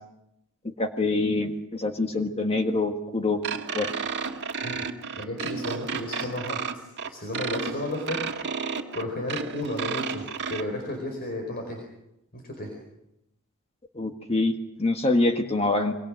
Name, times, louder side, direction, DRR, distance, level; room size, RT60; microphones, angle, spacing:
voice 1, 0.6-3.4 3.7-3.9 14.0-16.0, left 2 dB, 30° left, 5 dB, 1.6 m, -25 dB
sound 1, 3.4-10.6, right 5 dB, 55° right, 1.9 m, -32 dB
voice 2, 5.2-8.6 8.9-11.8 12.3-12.7, left 1 dB, 45° left, 3 dB, 4.6 m, -33 dB
27.0 x 23.5 x 6.3 m, 0.84 s
head